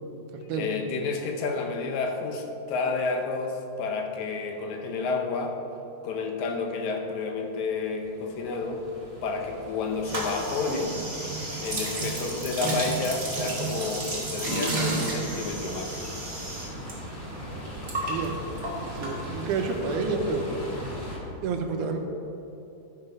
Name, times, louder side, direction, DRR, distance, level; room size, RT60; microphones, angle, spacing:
voice 1, 0.4-5.6 6.0-8.8 9.2-11.0 11.6-16.2 21.8-21.9, left 4 dB, 75° left, 3 dB, 2.1 m, -30 dB
sound 1, 7.6-21.2, equal, 20° left, 2.1 m, -40 dB
sound 2, 10.0-16.9 17.2-19.6, right 2 dB, 25° right, 1.6 m, -32 dB
voice 2, 18.0-18.4 18.9-20.5 21.4-22.0, right 4 dB, 80° right, 4 dB, 2.2 m, -29 dB
12.0 x 5.9 x 5.4 m, 2.9 s
omnidirectional pair, 3.5 m